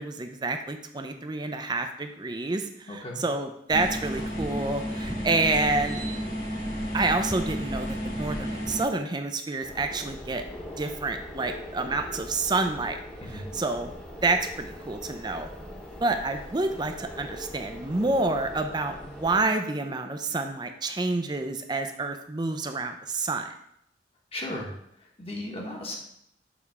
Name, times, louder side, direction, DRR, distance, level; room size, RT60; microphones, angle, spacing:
voice 1, 0.0-6.0 6.9-10.4 10.8-13.0 13.3-13.9 14.2-15.5 16.0-23.5, right 3 dB, 25° right, 6 dB, 0.5 m, -28 dB
voice 2, 2.9-3.2 13.2-13.5 24.3-26.0, left 1 dB, 35° left, 0 dB, 1.2 m, -36 dB
sound 1, 3.7-8.8, equal, 85° left, 2.5 m, -32 dB
sound 2, 9.6-19.5, equal, 5° left, 1.1 m, -42 dB
7.2 x 3.4 x 4.7 m, 0.74 s
head